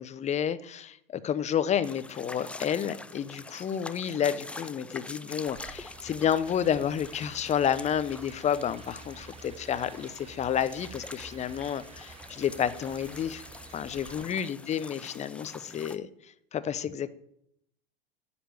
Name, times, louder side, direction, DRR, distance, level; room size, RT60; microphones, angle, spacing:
voice 1, 0.0-13.4 13.7-16.1 16.5-17.1, left 9 dB, 25° left, 15 dB, 0.7 m, -30 dB
sound 1, 1.8-16.0, left 2 dB, 5° left, 0.3 m, -45 dB
sound 2, 5.5-14.3, right 5 dB, 20° right, 1.0 m, -50 dB
9.2 x 7.0 x 9.0 m, 0.74 s
hypercardioid pair, 95°, 30 cm